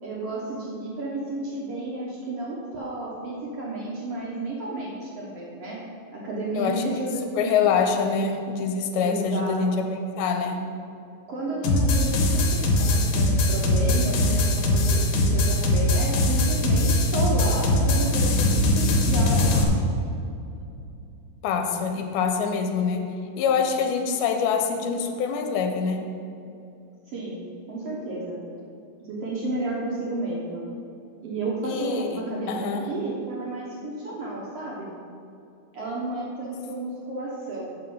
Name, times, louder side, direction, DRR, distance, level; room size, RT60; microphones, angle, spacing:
voice 1, 0.0-5.8 6.1-7.7 9.0-9.9 11.3-19.7 27.0-27.4 27.7-28.4 29.0-30.6 31.2-34.9 35.7-37.8, right 2 dB, 80° right, -5 dB, 1.3 m, -32 dB
voice 2, 7.4-9.9 10.2-10.6 21.4-26.0 31.6-32.9, left 6 dB, 90° left, 4 dB, 2.5 m, -25 dB
sound 1, 11.6-19.6, left 1 dB, 70° left, 2.3 m, -21 dB
7.9 x 6.9 x 5.5 m, 2.6 s
omnidirectional pair, 4.4 m